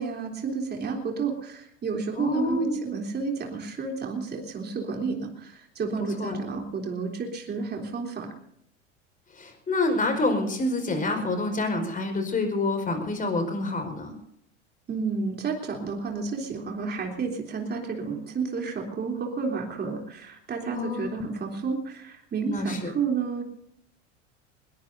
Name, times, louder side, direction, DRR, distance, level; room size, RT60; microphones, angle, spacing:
voice 1, 0.0-8.3 14.9-23.4, right 5 dB, 25° right, 2 dB, 3.5 m, -31 dB
voice 2, 2.2-2.8 6.2-6.4 9.4-14.2 20.7-21.3 22.5-22.9, left 2 dB, 20° left, 5 dB, 5.1 m, -27 dB
21.0 x 21.0 x 2.7 m, 0.73 s
hypercardioid pair, 85°, 36 cm